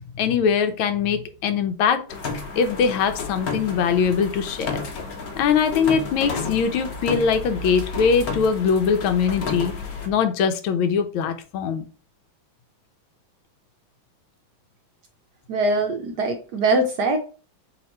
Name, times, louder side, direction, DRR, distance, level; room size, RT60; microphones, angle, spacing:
voice 1, 0.2-2.0 2.6-4.8 5.4-9.7 10.1-11.8, left 6 dB, 85° left, 8 dB, 1.4 m, -22 dB
sound 1, 2.1-10.1, left 4 dB, 55° left, 1.2 m, -32 dB
voice 2, 15.5-17.2, right 2 dB, 70° right, 4 dB, 1.0 m, -22 dB
3.5 x 2.9 x 4.3 m, 0.36 s
omnidirectional pair, 2.2 m